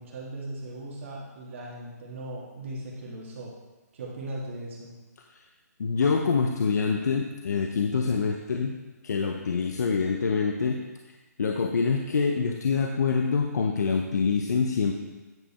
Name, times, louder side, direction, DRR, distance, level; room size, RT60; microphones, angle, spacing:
voice 1, 0.0-3.5 3.9-4.9, right 1 dB, 45° right, -4 dB, 1.8 m, -38 dB
voice 2, 5.8-8.8 9.0-10.8 11.4-14.9, left 5 dB, 75° left, 2 dB, 0.8 m, -25 dB
9.3 x 5.6 x 4.2 m, 1.2 s
hypercardioid pair, 165°, 9 cm